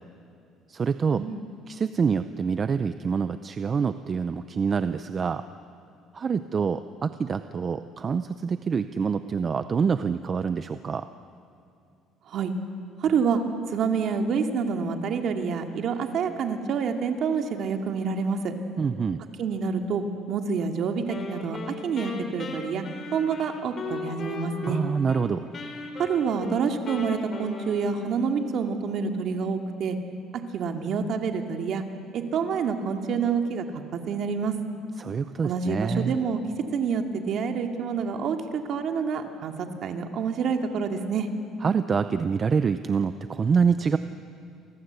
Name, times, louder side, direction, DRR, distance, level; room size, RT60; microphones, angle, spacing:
voice 1, 0.7-1.3 1.7-5.4 6.1-11.1 18.8-19.2 24.7-25.5 35.0-36.2 41.6-44.0, right 6 dB, 25° right, 11 dB, 0.6 m, -26 dB
voice 2, 13.0-13.4 13.7-18.5 19.4-22.8 23.1-24.8 26.0-30.0 30.5-31.8 32.1-33.7 33.9-34.5 35.4-36.4 36.7-41.3, right 6 dB, 50° right, 5 dB, 2.4 m, -27 dB
Wind instrument woodwind instrument, 21.1-25.2 25.5-28.4, left 3 dB, 30° left, 3.6 m, -37 dB
29.5 x 24.0 x 8.2 m, 2.6 s
cardioid pair, 155°, 0 cm